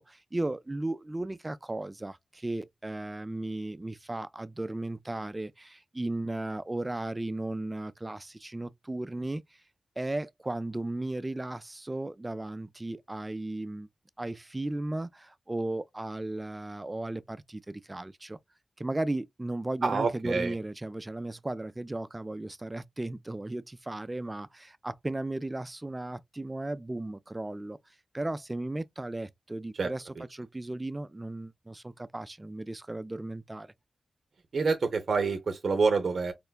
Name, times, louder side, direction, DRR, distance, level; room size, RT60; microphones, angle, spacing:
voice 1, 0.0-9.4 10.0-13.9 14.2-18.4 18.8-27.8 28.1-30.0 30.3-33.7, right 2 dB, 25° right, 0.3 m, -35 dB
voice 2, 19.8-20.5 29.7-29.9 30.2-30.3 34.5-36.3, right 4 dB, 75° right, 0.5 m, -27 dB
4.3 x 2.2 x 2.2 m
cardioid pair, 55°, 0 cm